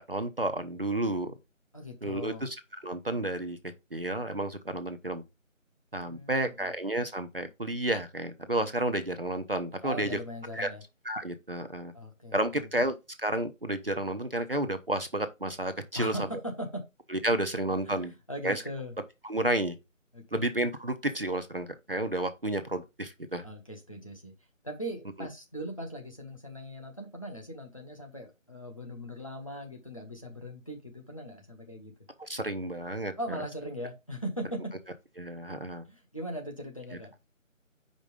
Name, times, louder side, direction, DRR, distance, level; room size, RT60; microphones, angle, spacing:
voice 1, 0.0-1.3 2.0-2.6 2.8-5.2 5.9-10.2 10.5-10.7 11.1-11.9 12.3-16.2 17.1-18.1 18.4-18.6 19.2-19.8 20.3-23.4 32.2-33.4 35.2-35.8, right 1 dB, 45° right, 0.7 m, -31 dB
voice 2, 1.7-2.4 6.1-6.7 9.8-10.8 11.9-12.7 15.9-16.8 17.8-18.0 18.3-18.9 20.1-20.4 23.4-24.3 24.6-31.9 33.2-34.7 35.9-37.1, equal, 25° left, 1.0 m, -39 dB
5.2 x 4.4 x 5.1 m
figure-of-eight pair, 165°, 39 cm